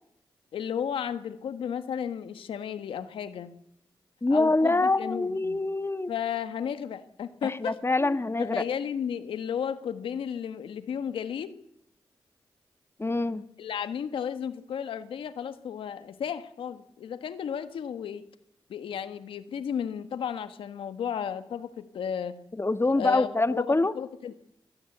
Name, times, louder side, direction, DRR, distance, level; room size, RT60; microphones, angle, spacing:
voice 1, 0.5-3.5 4.3-5.6 6.1-11.6 13.6-18.3 18.7-22.4 22.9-24.3, left 8 dB, 90° left, 11 dB, 1.5 m, -34 dB
voice 2, 4.2-6.1 7.4-8.6 13.0-13.5 22.6-23.9, left 2 dB, 30° left, 11 dB, 1.8 m, -25 dB
24.0 x 20.5 x 8.1 m, 0.79 s
cardioid pair, 45°, 9 cm